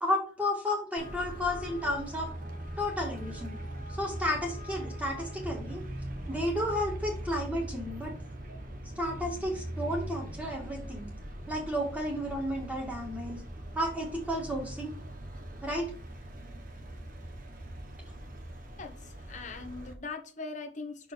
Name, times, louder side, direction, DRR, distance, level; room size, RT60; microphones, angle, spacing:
voice 1, 0.0-2.3 2.8-3.6 4.0-5.8 6.3-8.1 9.0-11.1 11.5-13.4 13.8-14.9 15.6-15.8, left 1 dB, 5° right, 2.0 m, -32 dB
Traffic noise roadway noise, 1.0-19.9, right 1 dB, 45° right, 1.2 m, -41 dB
voice 2, 18.8-21.1, left 3 dB, 40° left, 1.0 m, -41 dB
6.1 x 4.5 x 5.4 m
head